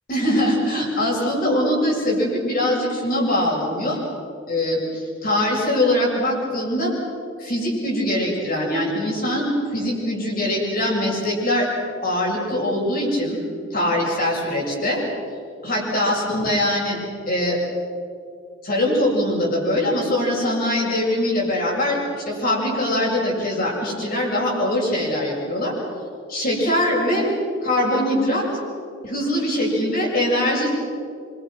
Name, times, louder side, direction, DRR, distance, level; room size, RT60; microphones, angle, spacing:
voice 1, 0.1-4.0 4.5-6.9 7.4-11.7 12.0-13.4 13.7-15.0 15.6-17.0 17.3-17.6 18.6-25.7 26.3-27.3 27.6-28.5 29.0-30.7, left 1 dB, 45° left, -2 dB, 7.4 m, -22 dB
27.0 x 25.0 x 6.2 m, 2.5 s
head